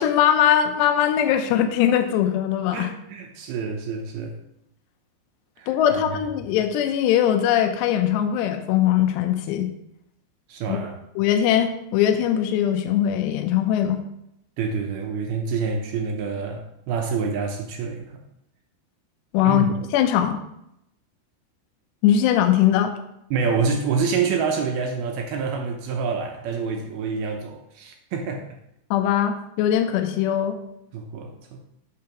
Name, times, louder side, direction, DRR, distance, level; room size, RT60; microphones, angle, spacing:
voice 1, 0.0-2.9 5.7-9.7 10.7-10.8 11.2-14.0 19.3-19.6 19.9-20.4 22.0-22.9 28.9-30.6, left 10 dB, 85° left, 7 dB, 2.8 m, -21 dB
voice 2, 2.7-4.4 5.6-6.2 10.5-11.0 14.6-18.2 19.4-19.7 23.3-28.4 30.9-31.7, right 5 dB, 80° right, 3 dB, 2.4 m, -27 dB
8.6 x 7.2 x 3.0 m, 0.79 s
omnidirectional pair, 4.8 m